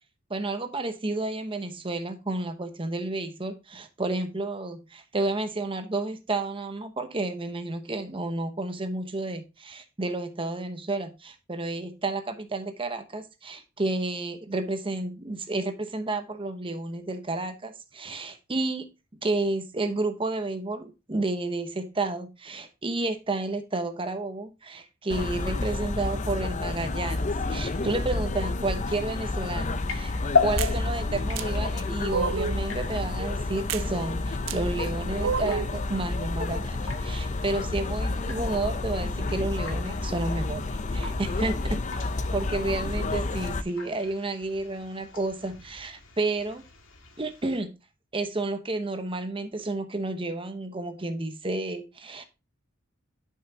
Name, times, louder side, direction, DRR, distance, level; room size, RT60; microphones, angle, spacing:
voice 1, 0.3-18.9 19.2-41.8 42.3-46.6 47.2-47.7 48.1-52.2, right 2 dB, 25° right, 0.9 m, -31 dB
sound 1, 25.1-43.6, left 2 dB, 35° left, 0.5 m, -30 dB
sound 2, 28.9-47.6, left 5 dB, 75° left, 2.0 m, -37 dB
sound 3, 30.6-30.8 31.4-31.5 32.1-32.6 33.7-33.9 34.5-34.6 35.2-35.7, right 6 dB, 75° right, 0.5 m, -29 dB
11.5 x 5.7 x 2.8 m
head